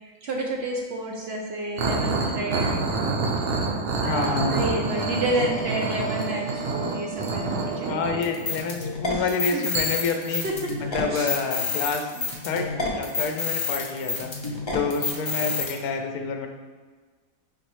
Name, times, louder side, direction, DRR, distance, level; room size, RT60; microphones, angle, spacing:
voice 1, 0.2-2.9 3.7-8.3 9.1-9.7 10.3-11.5 12.1-12.3, right 1 dB, 70° right, -1 dB, 0.6 m, -30 dB
sound 1, 1.8-8.8 9.7-9.8, right 3 dB, 85° right, 1.3 m, -27 dB
voice 2, 4.0-4.6 7.9-10.4 10.9-12.1 12.4-14.3 14.7-16.5, left 4 dB, 75° left, 4 dB, 1.0 m, -28 dB
sound 2, 4.9-8.4, right 7 dB, 45° right, 1.5 m, -38 dB
sound 3, 8.2-15.7, left 4 dB, 40° left, 0.3 m, -29 dB
5.1 x 3.1 x 3.1 m, 1.5 s
omnidirectional pair, 1.6 m